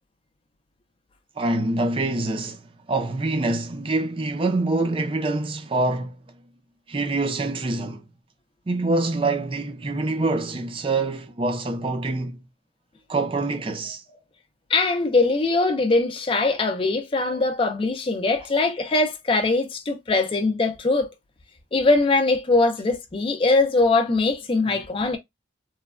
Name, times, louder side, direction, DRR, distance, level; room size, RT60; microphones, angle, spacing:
voice 1, 1.4-2.6 2.9-6.2 6.9-8.0 8.7-12.4 13.1-14.0 24.6-24.8, right 2 dB, 30° right, 0.4 m, -25 dB
voice 2, 14.7-21.1 21.7-25.2, left 3 dB, 30° left, 0.4 m, -21 dB
3.1 x 2.1 x 2.3 m
head